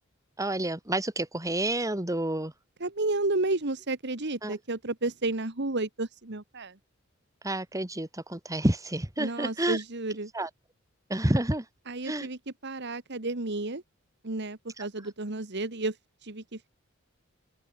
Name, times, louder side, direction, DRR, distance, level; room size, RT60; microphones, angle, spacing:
voice 1, 0.4-2.5 4.4-4.6 7.4-9.8 10.3-10.5 11.1-11.7 12.1-12.3 14.8-14.9, right 1 dB, 15° right, 2.3 m, -29 dB
voice 2, 2.8-6.8 9.2-10.3 11.9-13.8 14.2-16.0 16.2-16.7, right 2 dB, 60° right, 1.9 m, -32 dB
open air
head